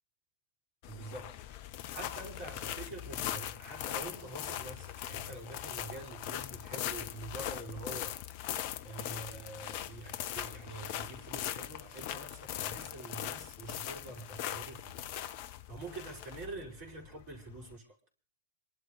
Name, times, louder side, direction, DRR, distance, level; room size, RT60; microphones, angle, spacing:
sound 1, 0.8-17.7, left 11 dB, 50° left, 0.8 m, -40 dB
voice 1, 0.9-1.3 1.9-8.2 8.8-15.0 15.7-17.9, right 3 dB, 45° right, 5.6 m, -46 dB
28.0 x 12.0 x 3.5 m
figure-of-eight pair, 90°, 0 cm